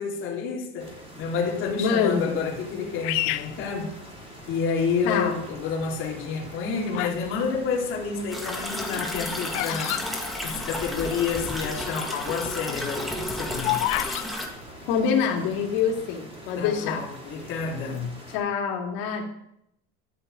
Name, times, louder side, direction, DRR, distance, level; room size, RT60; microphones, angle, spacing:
voice 1, 0.0-4.0 4.5-10.0 10.4-13.8 16.6-18.2, left 5 dB, 40° left, 3.2 m, -29 dB
sound 1, 0.8-18.4, right 1 dB, 20° right, 3.9 m, -45 dB
voice 2, 1.8-2.4 5.0-5.4 14.9-17.0 18.3-19.2, left 6 dB, 90° left, 2.3 m, -25 dB
Bird vocalization bird call bird song, 3.0-4.5 5.2-5.6 6.4-7.3 7.6-11.0 11.3-11.4 11.6-11.9 12.4-14.3, left 19 dB, 65° left, 0.5 m, -30 dB
sound 2, 8.3-14.5, left 1 dB, ahead, 1.6 m, -32 dB
12.5 x 5.7 x 9.1 m
cardioid pair, 165°, 29 cm